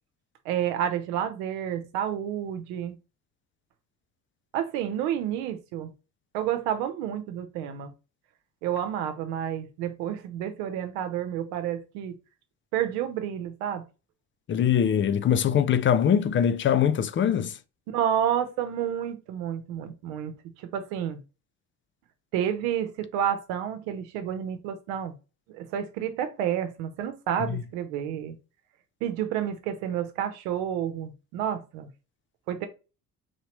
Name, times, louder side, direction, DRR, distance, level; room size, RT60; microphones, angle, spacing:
voice 1, 0.4-3.0 4.5-5.9 6.3-7.9 8.6-12.2 12.7-13.8 17.9-20.3 20.6-21.2 22.3-25.1 25.5-28.4 29.0-31.9 32.5-32.7, right 9 dB, 75° right, 0.9 m, -30 dB
voice 2, 14.5-17.6 27.5-27.6, left 8 dB, 30° left, 0.4 m, -22 dB
4.7 x 2.9 x 3.1 m
hypercardioid pair, 55°, 44 cm